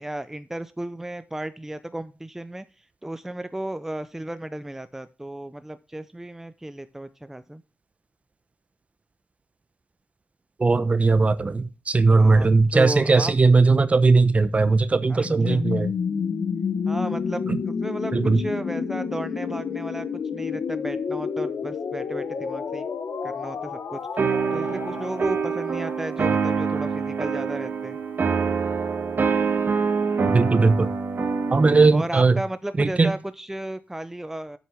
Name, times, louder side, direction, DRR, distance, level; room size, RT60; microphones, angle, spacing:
voice 1, 0.0-7.6 12.1-12.5 12.7-13.3 15.1-15.7 16.9-22.9 23.2-28.0 31.9-34.6, right 1 dB, 10° right, 0.5 m, -34 dB
voice 2, 10.6-15.9 17.5-17.6 18.1-18.4 30.3-30.9 31.5-32.4 32.8-33.1, right 3 dB, 35° right, 0.8 m, -18 dB
sound 1, 15.2-26.9, left 6 dB, 85° left, 1.3 m, -30 dB
sound 2, 24.2-32.0, right 5 dB, 55° right, 1.4 m, -25 dB
7.8 x 7.0 x 5.7 m
wide cardioid pair, 120°, 4 cm